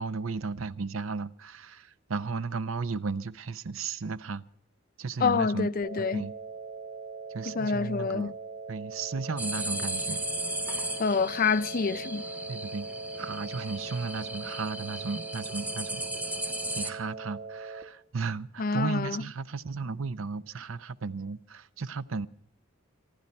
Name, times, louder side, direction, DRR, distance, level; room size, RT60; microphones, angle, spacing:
voice 1, 0.0-4.4 5.0-5.7 6.0-6.4 7.3-8.3 8.7-10.2 12.5-12.9 13.2-16.0 16.7-22.3, right 4 dB, 85° right, 0.7 m, -34 dB
voice 2, 5.2-6.3 7.5-8.3 11.0-12.2 18.6-19.2, left 5 dB, 45° left, 0.5 m, -27 dB
sound 1, 5.8-17.8, right 3 dB, 60° right, 1.7 m, -41 dB
sound 2, 9.4-16.9, right 1 dB, 10° right, 0.9 m, -36 dB
26.0 x 11.0 x 4.3 m
head